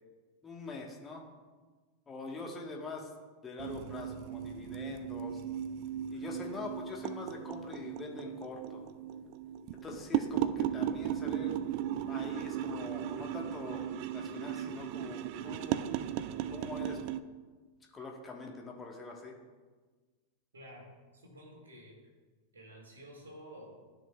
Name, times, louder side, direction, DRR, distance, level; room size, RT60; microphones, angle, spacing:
voice 1, 0.4-1.3 2.1-3.1 3.4-5.4 6.1-8.8 9.8-11.6 12.1-13.9 14.1-15.8 16.5-17.0 17.9-19.3, left 3 dB, 20° left, 1 dB, 1.4 m, -43 dB
sound 1, 3.6-17.2, right 10 dB, 45° right, 0.3 m, -36 dB
voice 2, 20.5-20.9 21.1-22.0 22.5-23.7, equal, 70° right, -1 dB, 2.2 m, -51 dB
12.5 x 5.9 x 2.4 m, 1.4 s
figure-of-eight pair, 90°, 0 cm